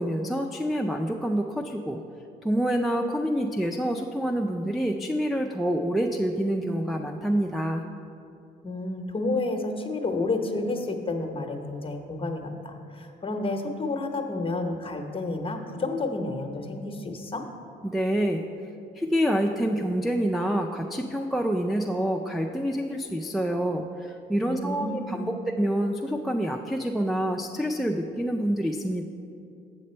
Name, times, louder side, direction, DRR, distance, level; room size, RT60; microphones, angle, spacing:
voice 1, 0.0-2.0 2.4-7.8 17.8-18.4 19.0-29.0, equal, ahead, 2 dB, 0.3 m, -27 dB
voice 2, 8.6-17.4 24.4-25.4, left 2 dB, 25° left, 4 dB, 0.8 m, -30 dB
7.5 x 6.5 x 4.3 m, 2.6 s
cardioid pair, 90°, 20 cm